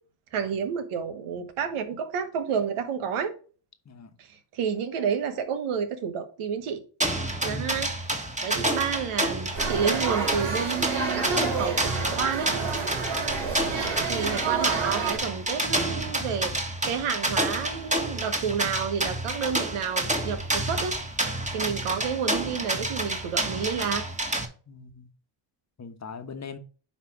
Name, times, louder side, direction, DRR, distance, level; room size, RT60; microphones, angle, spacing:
voice 1, 0.3-3.3 4.2-4.3 4.5-6.8 7.4-7.9 8.4-12.5 14.1-16.5 16.9-20.9 21.5-24.0, right 7 dB, 80° right, 1.4 m, -30 dB
sound 1, 7.0-24.5, right 1 dB, 15° right, 1.6 m, -29 dB
voice 2, 7.4-7.9 13.5-14.1 21.7-21.9 24.7-25.1 25.8-26.6, left 4 dB, 35° left, 1.2 m, -41 dB
sound 2, 9.5-15.2, right 5 dB, 65° right, 3.4 m, -29 dB
9.9 x 3.3 x 4.7 m
cardioid pair, 75°, 49 cm